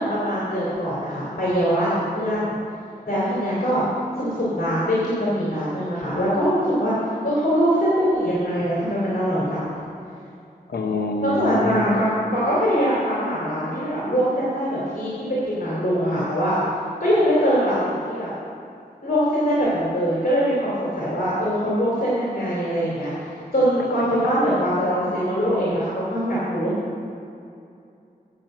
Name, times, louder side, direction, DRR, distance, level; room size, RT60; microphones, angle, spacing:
voice 1, 0.0-1.9 2.1-2.5 3.1-3.8 4.2-7.0 7.2-9.7 11.2-16.6 17.0-18.3 19.0-23.1 23.5-26.7, equal, 65° left, -8 dB, 2.7 m, -22 dB
voice 2, 10.7-11.8 24.2-24.3, left 2 dB, 85° left, 4 dB, 0.8 m, -26 dB
9.0 x 5.8 x 7.6 m, 2.6 s
wide cardioid pair, 70°, 16 cm